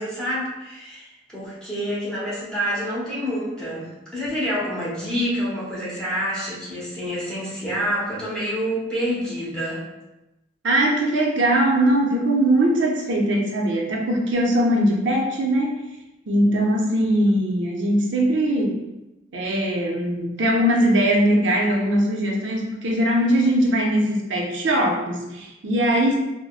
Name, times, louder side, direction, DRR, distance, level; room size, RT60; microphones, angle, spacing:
voice 1, 0.0-9.8, equal, 5° left, -9 dB, 0.9 m, -27 dB
voice 2, 10.6-15.7 16.3-18.8 19.3-26.2, right 1 dB, 85° right, -1 dB, 0.6 m, -20 dB
3.9 x 2.1 x 2.3 m, 0.97 s
head